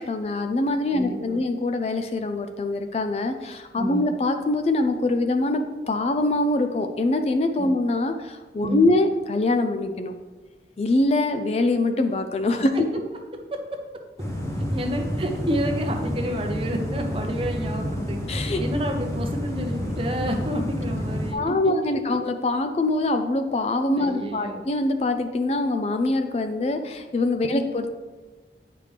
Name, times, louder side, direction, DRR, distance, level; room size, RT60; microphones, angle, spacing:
voice 1, 0.0-10.1 10.8-12.7 18.3-18.6 21.3-27.9, left 2 dB, 35° left, 7 dB, 0.3 m, -24 dB
voice 2, 0.9-1.4 3.8-4.0 7.6-7.7 8.6-8.9 12.7-12.9 13.5-13.6 14.7-22.2 24.0-24.6 27.4-27.6, equal, 30° right, 3 dB, 0.7 m, -30 dB
sound 1, 14.2-21.3, equal, 15° left, 0.8 m, -29 dB
8.5 x 4.9 x 3.3 m, 1.3 s
head